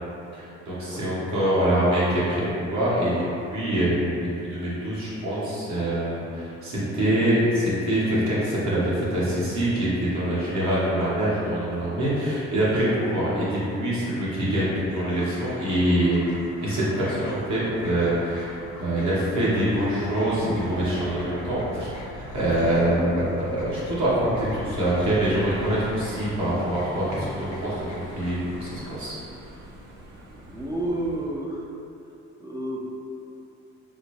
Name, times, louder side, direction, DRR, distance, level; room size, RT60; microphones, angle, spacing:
voice 1, 0.3-16.2 16.6-29.2, right 1 dB, 65° right, -9 dB, 1.2 m, -25 dB
sound 1, 14.9-28.9, left 2 dB, 70° left, 0.6 m, -45 dB
sound 2, 15.6-31.3, equal, 90° right, 0.6 m, -43 dB
sound 3, 20.3-24.0, right 1 dB, 40° right, 0.7 m, -38 dB
voice 2, 30.5-31.7 32.4-32.9, right 1 dB, 15° right, -3 dB, 0.3 m, -30 dB
3.8 x 2.1 x 3.0 m, 2.7 s
cardioid pair, 90°, 30 cm